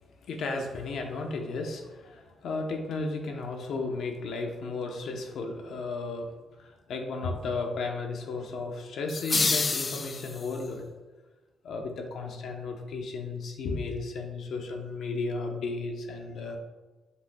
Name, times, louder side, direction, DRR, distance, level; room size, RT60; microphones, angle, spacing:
voice 1, 0.2-6.3 6.6-10.9 11.6-16.6, left 3 dB, 70° left, 3 dB, 0.9 m, -34 dB
sound 1, 9.1-10.7, left 4 dB, 25° left, 0.3 m, -28 dB
7.8 x 6.5 x 2.3 m, 1.2 s
wide cardioid pair, 170°, 0 cm